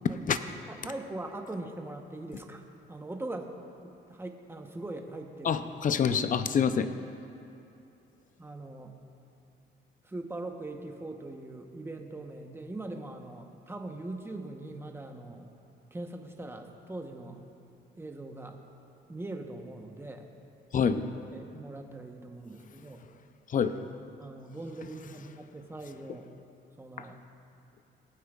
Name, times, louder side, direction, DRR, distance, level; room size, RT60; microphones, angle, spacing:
voice 1, 0.7-3.5 3.8-5.6 8.4-9.0 10.0-15.5 15.9-17.4 18.0-18.6 19.1-20.3 21.3-23.0 24.2-26.3 26.8-27.2, right 2 dB, 10° right, 4 dB, 0.9 m, -41 dB
voice 2, 5.4-6.9 20.7-21.1 23.5-23.7, left 7 dB, 40° left, 11 dB, 0.5 m, -26 dB
18.5 x 9.2 x 2.4 m, 2.7 s
cardioid pair, 90°, 20 cm